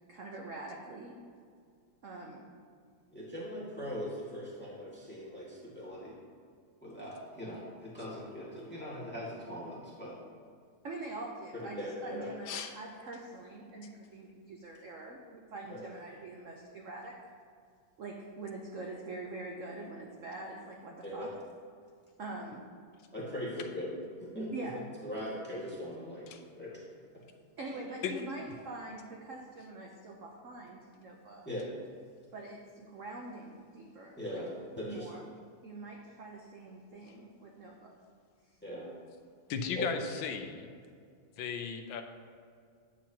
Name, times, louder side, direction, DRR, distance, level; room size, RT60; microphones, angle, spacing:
voice 1, 0.1-1.1 2.0-2.5 10.8-17.2 18.0-21.3 22.2-22.7 24.5-24.8 27.6-31.4 32.3-34.4 34.8-35.2 35.6-37.9, right 2 dB, 80° right, -1 dB, 0.7 m, -44 dB
voice 2, 3.1-6.2 6.8-10.2 11.5-12.3 15.7-15.8 21.0-21.3 23.1-23.9 24.2-24.5 25.0-26.3 26.5-26.8 27.7-27.8 31.4-31.7 34.2-34.5 34.8-35.1 38.6-38.9 39.7-40.0, equal, 5° left, -7 dB, 1.6 m, -40 dB
voice 3, 39.5-40.7 41.4-42.0, left 6 dB, 75° left, 6 dB, 1.4 m, -36 dB
9.8 x 7.4 x 2.9 m, 2.3 s
omnidirectional pair, 2.4 m